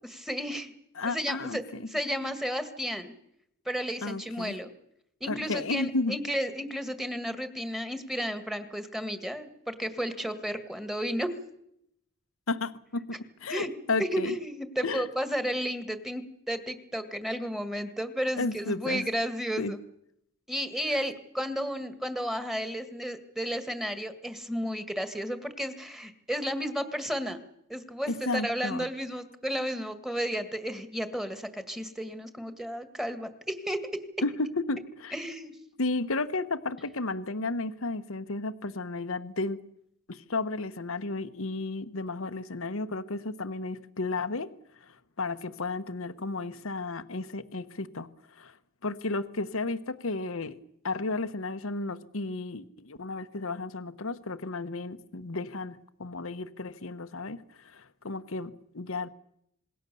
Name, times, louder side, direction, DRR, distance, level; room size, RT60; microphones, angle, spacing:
voice 1, 0.1-0.7 1.0-3.1 3.7-4.7 5.2-11.3 13.5-13.7 14.0-19.8 20.5-27.4 27.7-34.0 35.1-35.6, equal, ahead, 9 dB, 1.9 m, -33 dB
voice 2, 1.0-1.8 4.0-4.5 5.3-6.2 12.5-14.3 14.8-15.1 18.4-19.1 19.6-19.8 28.1-28.9 34.2-35.1 35.8-39.6 40.1-44.5 44.8-48.6 48.8-50.6 50.8-59.1, left 3 dB, 70° left, 12 dB, 1.1 m, -33 dB
26.5 x 21.0 x 7.0 m, 0.78 s
head